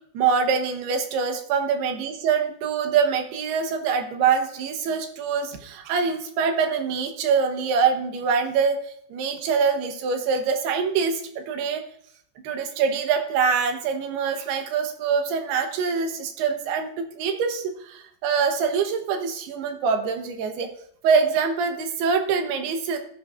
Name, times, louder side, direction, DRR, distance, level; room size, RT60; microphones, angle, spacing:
voice 1, 0.1-11.8 12.4-20.7 21.0-23.0, right 6 dB, 70° right, 6 dB, 3.0 m, -24 dB
14.0 x 10.5 x 2.5 m, 0.66 s
omnidirectional pair, 5.0 m